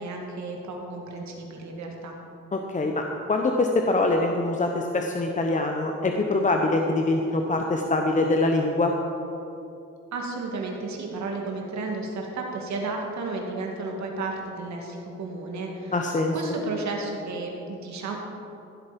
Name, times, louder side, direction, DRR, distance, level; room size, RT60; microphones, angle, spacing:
voice 1, 0.0-2.1 10.1-15.9 16.3-18.2, right 3 dB, 65° right, 0 dB, 2.4 m, -33 dB
voice 2, 2.5-8.9 15.9-16.3, left 2 dB, 25° left, 2 dB, 1.0 m, -24 dB
16.0 x 7.9 x 5.3 m, 2.9 s
cardioid pair, 90°, 30 cm